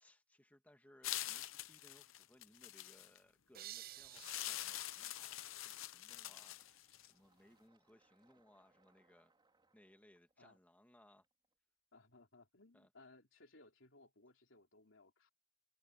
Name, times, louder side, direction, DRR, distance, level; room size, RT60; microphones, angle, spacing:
voice 1, 0.0-9.3 9.7-11.3 12.7-12.9, left 1 dB, 10° left, 1.7 m, -67 dB
sound 1, 1.0-3.2 4.1-7.1, left 14 dB, 85° left, 0.7 m, -45 dB
sound 2, 3.5-6.3, right 13 dB, 50° right, 0.5 m, -55 dB
Fill (with liquid), 6.1-11.5, right 3 dB, 25° right, 4.9 m, -77 dB
voice 2, 11.9-15.3, left 2 dB, 70° left, 3.7 m, -64 dB
head